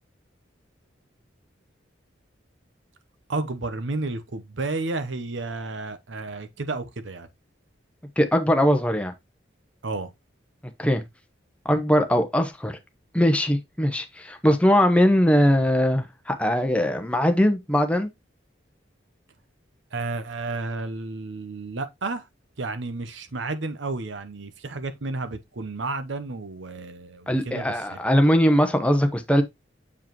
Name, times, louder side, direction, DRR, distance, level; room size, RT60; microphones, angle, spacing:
voice 1, 3.3-7.3 9.8-10.1 19.9-22.3 22.6-28.0, right 3 dB, 80° right, 0.8 m, -32 dB
voice 2, 8.2-9.1 10.8-11.0 11.6-12.7 13.1-18.1 27.3-29.4, equal, 5° left, 0.8 m, -21 dB
7.3 x 4.6 x 3.0 m
head